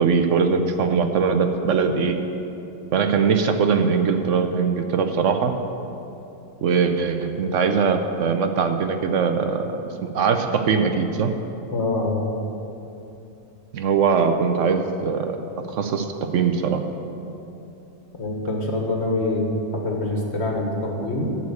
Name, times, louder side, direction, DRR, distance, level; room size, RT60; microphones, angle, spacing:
voice 1, 0.0-2.2 2.9-5.5 6.6-11.3 13.7-15.4 15.7-16.1 16.3-16.8, right 5 dB, 60° right, 7 dB, 0.8 m, -21 dB
voice 2, 11.7-12.2 18.2-19.5 19.7-21.3, left 2 dB, 40° left, 0 dB, 1.5 m, -25 dB
8.4 x 7.1 x 8.4 m, 2.9 s
omnidirectional pair, 1.8 m